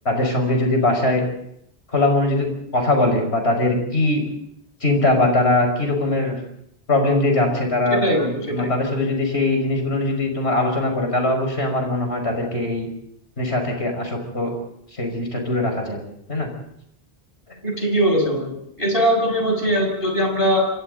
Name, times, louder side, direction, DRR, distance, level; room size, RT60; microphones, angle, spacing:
voice 1, 0.0-1.2 1.9-4.2 4.8-6.4 6.9-12.9 13.4-14.5 15.0-16.0 16.3-16.5, left 2 dB, 90° left, 3 dB, 6.0 m, -21 dB
voice 2, 7.9-8.7 17.6-18.5 18.8-20.7, equal, 60° left, 2 dB, 6.8 m, -20 dB
28.0 x 26.5 x 4.0 m, 0.72 s
omnidirectional pair, 1.1 m